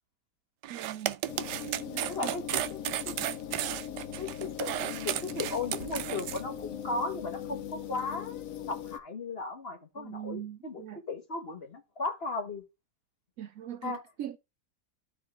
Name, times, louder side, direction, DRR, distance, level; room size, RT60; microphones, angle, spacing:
sound 1, 0.6-6.4, right 13 dB, 85° right, 1.2 m, -34 dB
voice 1, 0.7-1.2 1.6-2.3 10.0-11.0 13.4-14.4, right 11 dB, 70° right, 0.8 m, -41 dB
sound 2, 1.3-9.0, left 9 dB, 60° left, 1.1 m, -40 dB
voice 2, 2.1-2.8 3.0-3.1 4.2-12.6 13.8-14.0, left 3 dB, 40° left, 1.3 m, -36 dB
14.5 x 4.9 x 2.4 m
omnidirectional pair, 1.8 m